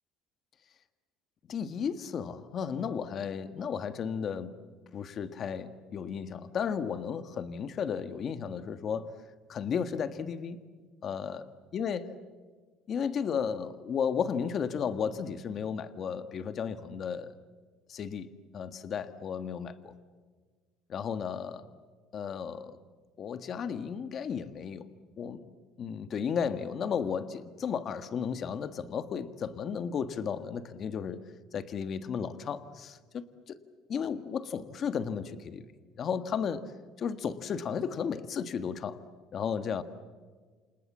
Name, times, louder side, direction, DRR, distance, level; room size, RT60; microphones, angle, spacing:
voice 1, 1.5-4.6 4.9-9.1 9.5-10.6 11.0-11.4 11.7-12.1 12.9-17.3 17.9-19.9 20.9-21.7 22.1-22.8 23.2-24.9 25.2-25.4 25.8-31.2 31.5-33.6 33.9-35.6 35.9-36.7 37.0-39.0 39.3-39.8, left 7 dB, 40° left, 11 dB, 1.5 m, -34 dB
30.0 x 27.0 x 7.3 m, 1.5 s
cardioid pair, 145°, 0 cm